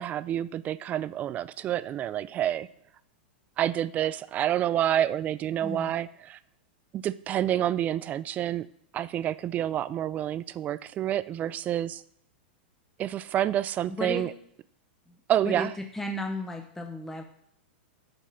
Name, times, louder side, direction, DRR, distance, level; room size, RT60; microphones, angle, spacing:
voice 1, 0.0-2.7 3.6-6.4 6.9-8.7 8.9-12.0 13.0-14.3 15.3-15.7, right 11 dB, 25° right, 18 dB, 0.3 m, -28 dB
voice 2, 5.6-5.9 13.9-14.3 15.1-15.2 15.4-17.2, left 1 dB, 5° left, 4 dB, 0.6 m, -34 dB
7.3 x 5.4 x 5.7 m, 0.68 s
hypercardioid pair, 125°, 6 cm